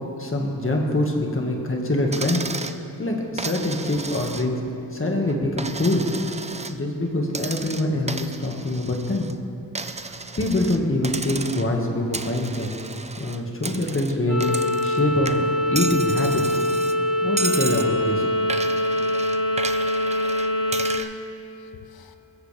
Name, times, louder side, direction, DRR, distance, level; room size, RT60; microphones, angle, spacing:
voice 1, 0.2-2.4 3.0-4.6 4.9-6.1 6.7-9.3 10.4-12.7 13.2-16.6 17.2-18.3, left 1 dB, 35° left, 0 dB, 1.9 m, -24 dB
Coin (dropping), 2.1-2.8 3.4-4.7 5.1-6.8 7.3-9.3 9.8-10.8 11.0-11.8 12.1-15.0 15.3-17.0 17.4-17.9 18.5-21.1, right 3 dB, 20° right, 0.5 m, -33 dB
sound 1, 14.3-21.0, left 1 dB, 45° right, 2.0 m, -23 dB
voice 2, 18.6-19.7 20.0-20.3 20.8-21.2 21.8-22.2, left 6 dB, 80° left, 9 dB, 0.9 m, -52 dB
21.5 x 15.0 x 3.5 m, 3.0 s
wide cardioid pair, 115°, 37 cm